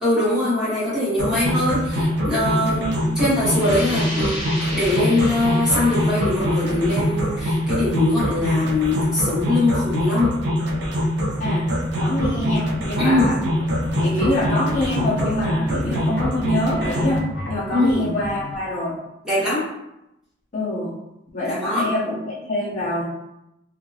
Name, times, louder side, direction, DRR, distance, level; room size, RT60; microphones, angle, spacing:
voice 1, 0.0-2.8 3.2-4.4 4.7-10.3 13.0-13.3 17.7-18.1 19.2-19.7 21.5-21.8, left 2 dB, 5° right, -11 dB, 1.3 m, -22 dB
sound 1, 1.2-17.2, equal, 60° right, 0.5 m, -24 dB
voice 2, 2.6-2.9 11.4-11.7 12.0-13.4 14.0-19.0 20.5-20.9 21.3-23.0, left 1 dB, 40° left, -6 dB, 0.6 m, -25 dB
sound 2, 3.5-9.0, equal, 25° left, 1.1 m, -34 dB
sound 3, 11.9-18.6, left 1 dB, 75° left, 0.8 m, -36 dB
2.8 x 2.4 x 2.8 m, 0.87 s
head